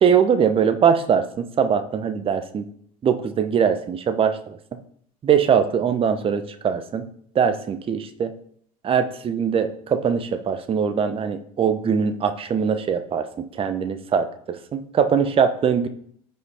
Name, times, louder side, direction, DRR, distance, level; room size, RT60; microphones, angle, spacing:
voice 1, 0.0-2.6 3.0-4.6 5.2-7.1 7.3-8.3 8.8-15.9, right 7 dB, 30° right, 10 dB, 0.8 m, -21 dB
14.5 x 5.7 x 2.7 m, 0.63 s
figure-of-eight pair, 65°, 19 cm